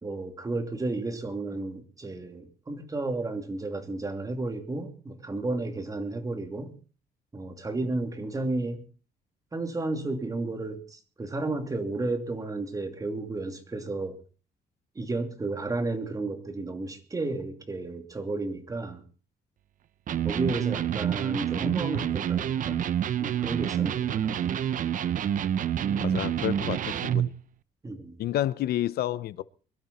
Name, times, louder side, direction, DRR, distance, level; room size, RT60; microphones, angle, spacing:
voice 1, 0.0-6.7 7.3-8.8 9.5-14.2 14.9-19.0 20.2-22.8 23.2-24.5 27.8-28.2, right 2 dB, 20° right, 2.8 m, -32 dB
Electric guitar, 20.1-27.4, right 10 dB, 55° right, 0.8 m, -28 dB
voice 2, 26.0-27.2 28.2-29.4, left 13 dB, 80° left, 0.7 m, -29 dB
22.5 x 12.5 x 4.2 m
cardioid pair, 120°, 16 cm